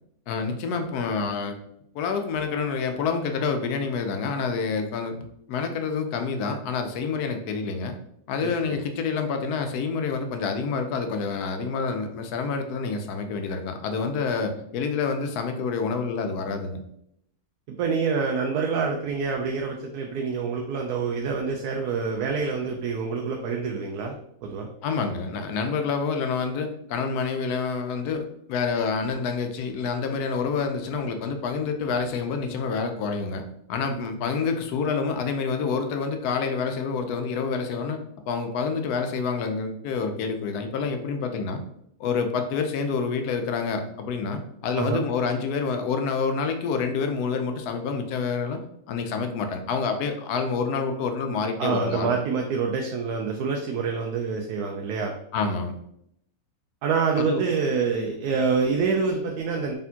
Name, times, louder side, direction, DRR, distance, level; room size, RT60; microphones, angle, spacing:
voice 1, 0.3-1.6 1.9-5.2 5.5-7.9 8.3-16.8 24.8-28.2 28.5-33.4 33.7-38.0 38.3-41.6 42.0-48.6 48.9-52.1 55.3-55.7 57.2-57.4, left 5 dB, 90° left, 6 dB, 1.2 m, -27 dB
voice 2, 8.4-8.8 17.7-24.1 24.4-24.7 44.7-45.0 51.6-55.2 56.8-59.7, right 5 dB, 85° right, 1 dB, 1.1 m, -26 dB
4.2 x 3.6 x 2.8 m, 0.73 s
omnidirectional pair, 1.6 m